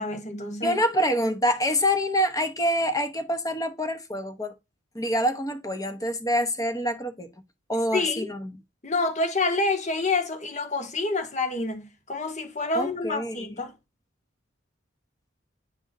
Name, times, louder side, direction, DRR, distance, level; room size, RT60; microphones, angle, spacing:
voice 1, 0.0-0.8 7.9-8.3 8.8-13.7, left 3 dB, 35° left, 1.3 m, -28 dB
voice 2, 0.6-4.5 4.9-7.3 7.7-8.6 12.7-13.4, equal, 20° left, 0.9 m, -26 dB
10.0 x 3.5 x 2.6 m
head